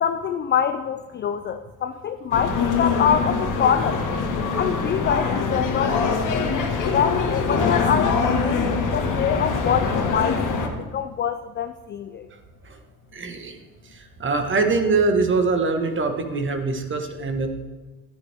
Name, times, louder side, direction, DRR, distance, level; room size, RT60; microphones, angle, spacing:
voice 1, 0.0-4.0 4.6-6.2 6.8-8.7 8.9-10.4 10.8-12.3, left 8 dB, 25° left, 9 dB, 0.3 m, -25 dB
sound 1, 2.3-10.7, left 4 dB, 45° left, 1.6 m, -23 dB
voice 2, 13.1-13.6 13.8-17.5, right 3 dB, 25° right, 6 dB, 1.4 m, -23 dB
12.5 x 8.7 x 3.5 m, 1.3 s
supercardioid pair, 100°, 43 cm